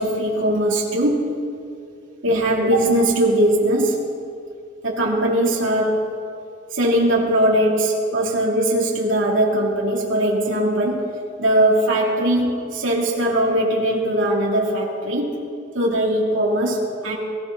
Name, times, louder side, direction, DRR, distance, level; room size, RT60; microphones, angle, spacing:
voice 1, 0.0-1.3 2.2-4.0 4.8-6.1 6.7-11.1 11.4-15.3 15.7-17.1, right 1 dB, 70° right, -3 dB, 3.0 m, -20 dB
21.5 x 15.0 x 4.1 m, 2.4 s
head